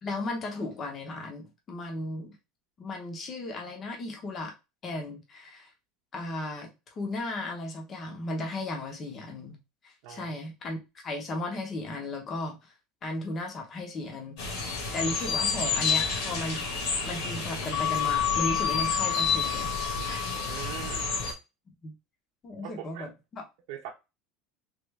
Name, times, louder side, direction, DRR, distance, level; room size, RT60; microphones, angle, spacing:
voice 1, 0.0-2.4 2.8-4.5 4.8-5.7 6.1-9.6 9.8-12.7 13.0-14.4 14.9-16.6 17.0-20.2 21.8-21.9 22.4-23.4, left 2 dB, 25° left, 0.8 m, -35 dB
voice 2, 10.0-10.3 20.5-21.1 22.6-23.1 23.7-23.9, right 10 dB, 60° right, 0.7 m, -41 dB
sound 1, 14.4-21.3, left 6 dB, 60° left, 1.3 m, -28 dB
3.4 x 2.5 x 3.2 m
cardioid pair, 180°, 0 cm